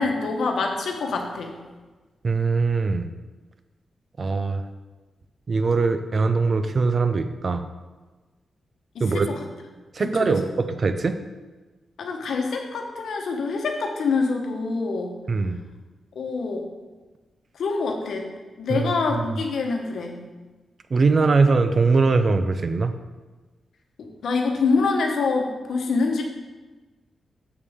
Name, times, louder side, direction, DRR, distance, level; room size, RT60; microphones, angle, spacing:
voice 1, 0.0-1.5 8.9-9.4 10.0-10.5 12.0-15.1 16.1-16.7 17.6-18.3 18.6-20.2 24.0-26.2, left 4 dB, 80° left, 2 dB, 1.0 m, -25 dB
voice 2, 2.2-3.1 4.2-4.6 5.5-7.6 9.0-9.3 9.9-11.2 15.3-15.6 18.7-19.2 20.9-22.9, right 4 dB, 45° right, 9 dB, 0.5 m, -21 dB
6.9 x 6.7 x 3.6 m, 1.3 s
wide cardioid pair, 115°, 0 cm